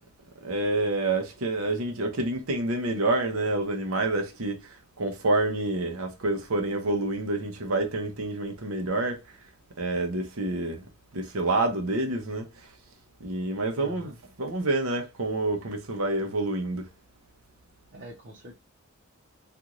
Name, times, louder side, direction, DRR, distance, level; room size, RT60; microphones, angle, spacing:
voice 1, 0.4-9.2 9.8-10.9 11.1-12.5 13.2-14.1 14.4-16.9, right 2 dB, 80° right, 0.8 m, -28 dB
voice 2, 13.8-14.1 17.9-18.5, equal, 50° right, 0.9 m, -44 dB
3.0 x 2.5 x 2.5 m
head